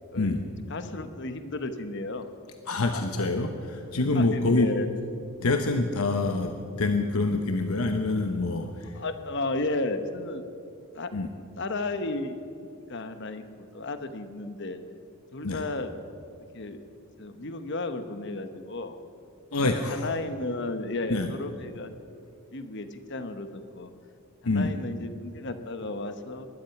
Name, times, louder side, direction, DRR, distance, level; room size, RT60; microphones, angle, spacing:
voice 1, 0.7-2.3 2.9-3.0 4.1-4.9 8.9-10.4 10.9-11.1 11.6-12.4 12.9-14.8 15.3-15.9 16.5-16.8 17.2-19.0 19.8-23.9 24.4-26.5, left 2 dB, 55° left, 9 dB, 1.0 m, -33 dB
voice 2, 2.7-4.7 5.4-9.0 11.1-11.3 15.4-15.6 19.5-20.1 21.1-21.3 24.4-24.7, left 2 dB, 85° left, 6 dB, 0.9 m, -26 dB
19.5 x 12.5 x 5.9 m, 2.5 s
head